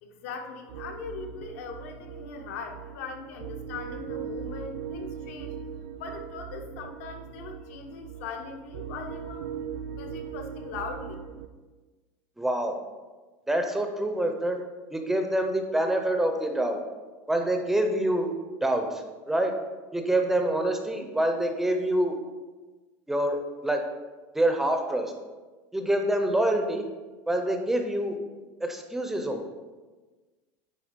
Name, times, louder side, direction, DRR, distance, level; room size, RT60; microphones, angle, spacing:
voice 1, 0.0-5.6 6.0-9.5 9.9-11.1, left 5 dB, 75° left, 4 dB, 1.0 m, -40 dB
sound 1, 0.7-11.5, right 7 dB, 80° right, 0.5 m, -39 dB
voice 2, 12.4-12.8 13.5-14.6 14.9-16.8 17.3-18.3 18.6-19.5 19.9-22.2 23.1-23.8 24.3-25.1 25.7-26.8 27.3-28.2 28.6-29.4, right 1 dB, 5° right, 4 dB, 0.5 m, -26 dB
9.5 x 3.5 x 5.0 m, 1.3 s
cardioid pair, 175°, 8 cm